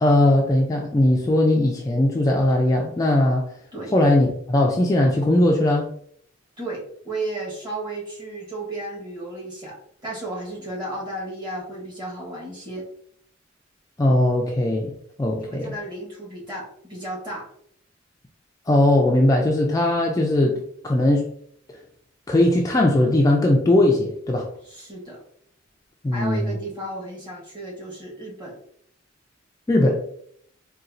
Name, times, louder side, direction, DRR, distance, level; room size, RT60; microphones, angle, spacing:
voice 1, 0.0-3.5 3.9-5.9 14.0-14.9 15.2-15.7 18.7-21.3 22.3-24.5 26.0-26.5 29.7-30.0, left 1 dB, 20° left, 0 dB, 0.3 m, -19 dB
voice 2, 6.6-12.8 15.4-17.5 24.6-25.2 26.1-28.6, right 2 dB, 25° right, -4 dB, 1.3 m, -33 dB
4.0 x 2.3 x 2.5 m, 0.66 s
head